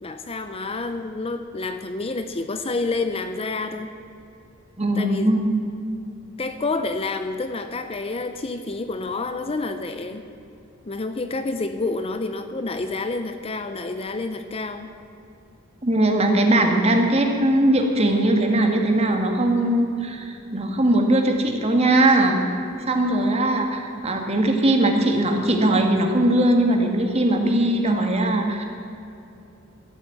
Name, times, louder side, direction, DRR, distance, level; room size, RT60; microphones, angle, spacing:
voice 1, 0.0-3.9 5.0-5.3 6.4-10.2 10.9-14.9, left 3 dB, 30° left, 8 dB, 0.6 m, -28 dB
voice 2, 4.8-5.5 15.8-22.4 22.9-28.6, right 1 dB, 30° right, 3 dB, 1.6 m, -20 dB
13.0 x 8.3 x 8.3 m, 2.8 s
head